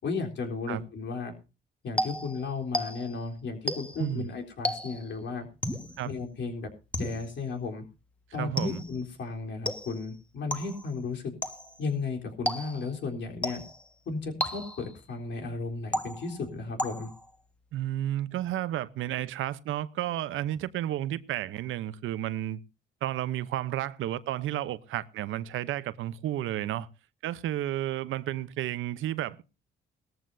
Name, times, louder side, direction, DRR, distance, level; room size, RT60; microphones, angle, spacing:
voice 1, 0.0-1.3 1.8-5.5 6.0-6.7 7.0-7.8 8.3-11.3 11.8-13.6 14.1-17.1, left 4 dB, 65° left, 3.8 m, -34 dB
sound 1, 2.0-3.2 3.7-4.1 4.6-5.1 5.6-6.0 6.9-7.4 8.6-9.0 9.7-10.1 10.5-10.9 11.4-11.8 12.5-13.0 13.4-13.9 14.4-15.0 15.9-16.4 16.8-17.3, left 1 dB, 5° left, 1.5 m, -33 dB
voice 2, 4.0-4.3 6.0-6.1 8.4-8.8 17.7-22.6 23.0-26.9 27.2-29.4, right 13 dB, 80° right, 0.8 m, -32 dB
19.0 x 14.0 x 2.7 m
cardioid pair, 90°, 20 cm